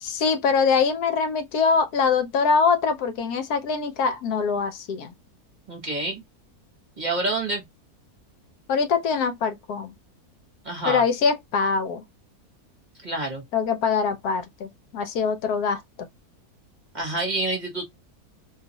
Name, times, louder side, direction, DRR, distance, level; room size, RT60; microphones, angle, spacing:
voice 1, 0.0-5.1 8.7-9.9 10.8-12.0 13.5-15.8, left 5 dB, 80° left, 1.2 m, -23 dB
voice 2, 5.7-6.2 7.0-7.6 10.6-11.0 13.0-13.4 16.9-17.9, right 2 dB, 35° right, 1.0 m, -27 dB
2.7 x 2.3 x 4.0 m
omnidirectional pair, 1.6 m